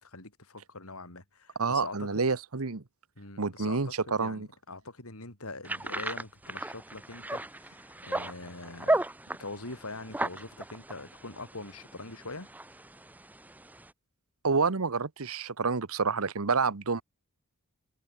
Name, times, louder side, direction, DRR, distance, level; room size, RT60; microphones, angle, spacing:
voice 1, 0.0-2.3 3.2-9.0 9.4-12.5, left 3 dB, 75° left, 4.9 m, -43 dB
voice 2, 1.6-2.8 3.4-4.5 14.4-17.0, right 4 dB, 75° right, 1.1 m, -28 dB
sound 1, 5.7-13.9, right 1 dB, 5° right, 0.7 m, -35 dB
head